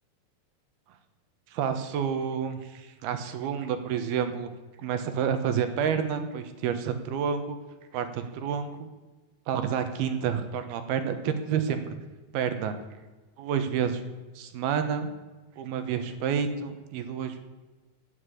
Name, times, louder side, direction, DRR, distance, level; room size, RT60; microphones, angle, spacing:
voice 1, 1.5-4.5 4.8-7.6 7.9-8.9 9.5-11.8 12.3-12.7 13.4-14.0 14.4-15.1 15.6-17.4, right 7 dB, 70° right, 8 dB, 3.0 m, -29 dB
12.5 x 9.8 x 8.3 m, 1.2 s
omnidirectional pair, 4.8 m